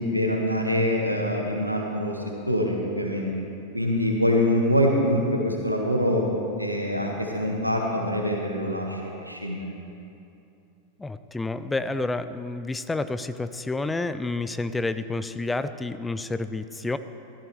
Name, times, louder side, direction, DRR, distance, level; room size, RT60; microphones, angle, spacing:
voice 1, 0.0-3.3 3.7-6.2 6.6-9.7, left 1 dB, 90° right, 0 dB, 1.5 m, -25 dB
voice 2, 11.0-17.0, left 2 dB, 10° left, 12 dB, 0.4 m, -29 dB
15.0 x 13.5 x 3.2 m, 2.7 s
figure-of-eight pair, 90°, 0 cm